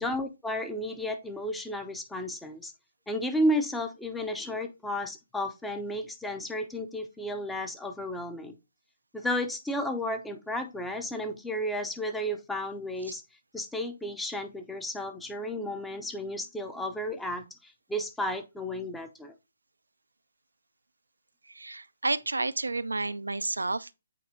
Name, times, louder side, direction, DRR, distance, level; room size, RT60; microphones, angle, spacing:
voice 1, 0.0-2.7 3.1-8.5 9.1-13.2 13.5-19.3, equal, 5° left, 0.6 m, -33 dB
voice 2, 21.5-23.9, right 3 dB, 80° right, 0.3 m, -31 dB
8.3 x 4.2 x 2.7 m
figure-of-eight pair, 135°, 0 cm